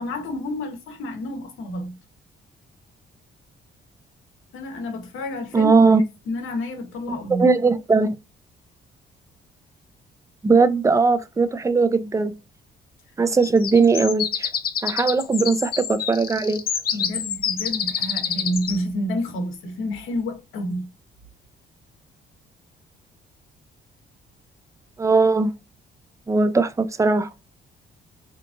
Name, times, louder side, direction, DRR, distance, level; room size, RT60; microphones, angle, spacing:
voice 1, 0.0-2.0 4.5-5.8 6.3-7.5 16.9-20.9, left 1 dB, 85° left, 0.8 m, -29 dB
voice 2, 5.5-6.0 7.1-8.2 10.4-12.3 13.2-14.5 14.8-16.6 25.0-25.5 26.3-27.3, right 4 dB, 15° right, 0.4 m, -19 dB
sound 1, 13.4-18.8, left 8 dB, 50° left, 0.5 m, -27 dB
2.9 x 2.4 x 2.4 m
cardioid pair, 90°, 20 cm